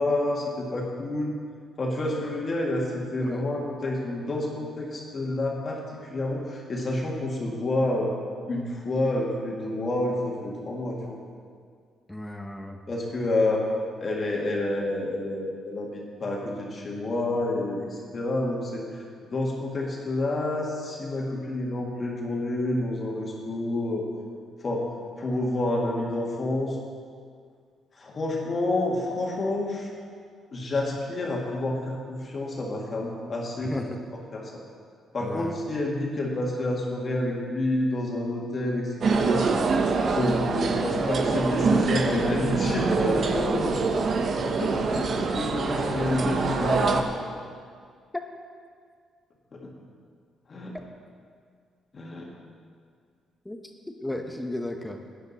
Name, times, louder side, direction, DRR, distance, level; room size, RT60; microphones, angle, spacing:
voice 1, 0.0-1.3 1.8-8.1 8.5-11.2 12.9-13.7 14.0-24.1 24.6-24.9 25.2-26.8 28.0-29.9 30.5-33.8 34.3-34.6 35.1-39.5 40.1-43.8 44.6-47.0 49.5-49.7 50.5-50.8 51.9-52.3, left 2 dB, 40° left, -2 dB, 1.9 m, -29 dB
voice 2, 12.1-12.8 33.6-34.0 35.2-35.5 53.4-53.6 54.0-55.0, left 1 dB, 10° left, 4 dB, 0.8 m, -34 dB
sound 1, 39.0-47.0, right 4 dB, 55° right, 0.9 m, -25 dB
11.0 x 9.7 x 4.1 m, 2.1 s
cardioid pair, 90°, 0 cm